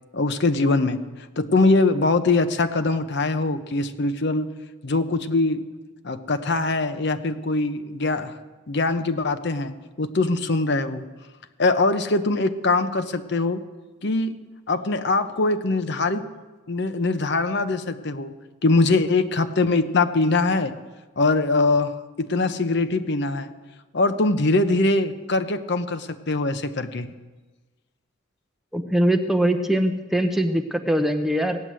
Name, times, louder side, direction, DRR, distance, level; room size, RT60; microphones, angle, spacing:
voice 1, 0.1-1.0 1.4-4.5 4.8-5.6 6.0-8.3 8.7-11.1 11.6-13.6 14.0-14.4 14.7-16.2 16.7-18.3 18.6-20.7 21.2-23.5 23.9-27.1, left 3 dB, 55° left, 9 dB, 0.8 m, -22 dB
voice 2, 28.7-31.6, right 1 dB, ahead, 4 dB, 0.7 m, -22 dB
16.5 x 9.7 x 7.5 m, 1.2 s
head